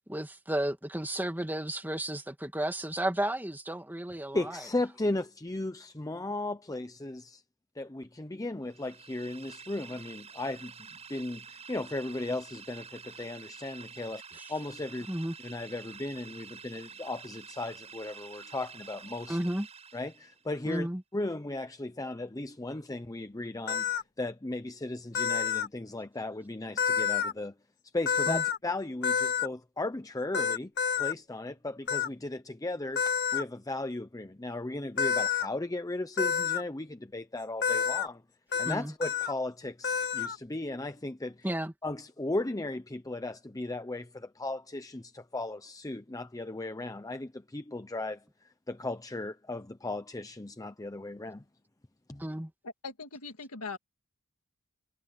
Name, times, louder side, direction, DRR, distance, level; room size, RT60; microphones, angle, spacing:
voice 1, 0.1-4.6 14.4-14.5 15.1-15.3 19.3-19.7 20.6-21.0 28.3-28.4 38.7-38.9 41.4-41.7 52.2-52.5, right 1 dB, 10° right, 2.3 m, -33 dB
voice 2, 4.3-7.4 7.7-10.7 11.1-14.2 14.5-15.1 15.4-19.4 19.9-20.9 21.1-27.5 27.9-30.7 31.0-38.2 38.6-41.5 41.8-51.4 52.1-52.3, left 2 dB, 15° left, 0.7 m, -36 dB
sound 1, 8.7-20.5, right 6 dB, 30° right, 7.7 m, -49 dB
sound 2, 23.7-24.0 25.1-25.7 26.8-27.3 28.1-28.6 29.0-29.5 30.3-31.1 31.9-32.1 33.0-33.4 35.0-35.5 36.2-36.6 37.6-38.1 38.5-38.7 39.0-39.3 39.8-40.4, left 7 dB, 50° left, 2.0 m, -28 dB
voice 3, 52.6-53.8, left 4 dB, 75° left, 2.1 m, -40 dB
head